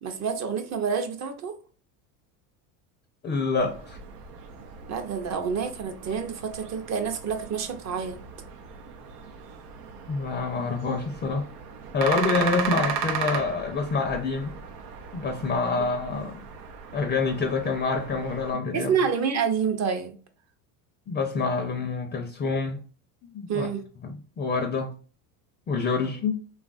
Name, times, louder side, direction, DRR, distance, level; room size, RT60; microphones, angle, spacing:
voice 1, 0.0-1.6 4.9-8.2 15.8-15.9 18.7-20.2 23.5-23.8, right 6 dB, 40° right, 0.6 m, -28 dB
voice 2, 3.2-4.0 10.1-11.5 11.9-14.5 15.1-16.4 16.9-18.9 21.1-22.8 23.2-23.7 24.0-25.0 25.7-26.4, left 4 dB, 25° left, 0.5 m, -27 dB
sound 1, 3.6-18.5, right 6 dB, 85° right, 0.7 m, -36 dB
3.2 x 2.4 x 2.4 m
supercardioid pair, 85°, 45 cm